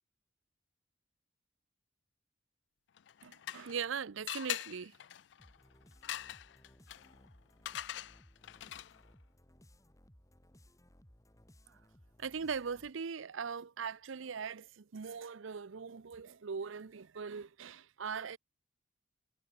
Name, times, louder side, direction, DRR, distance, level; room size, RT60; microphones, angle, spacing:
sound 1, 3.0-3.9 4.3-9.1, left 12 dB, 60° left, 0.4 m, -43 dB
voice 1, 3.2-4.9 11.7-11.8 12.2-18.4, right 6 dB, 85° right, 0.6 m, -40 dB
sound 2, 5.4-13.1, equal, 15° left, 5.1 m, -62 dB
head